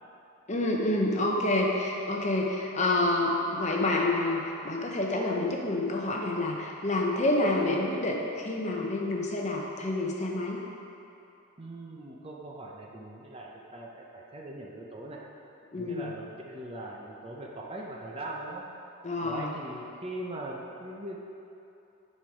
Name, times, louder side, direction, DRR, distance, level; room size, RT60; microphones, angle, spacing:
voice 1, 0.5-10.6 15.7-16.1 19.0-19.5, left 2 dB, 30° left, -1 dB, 0.7 m, -28 dB
voice 2, 11.6-15.2 15.8-18.6 19.2-21.2, right 1 dB, 25° right, -2 dB, 0.6 m, -40 dB
9.3 x 4.3 x 4.8 m, 2.8 s
head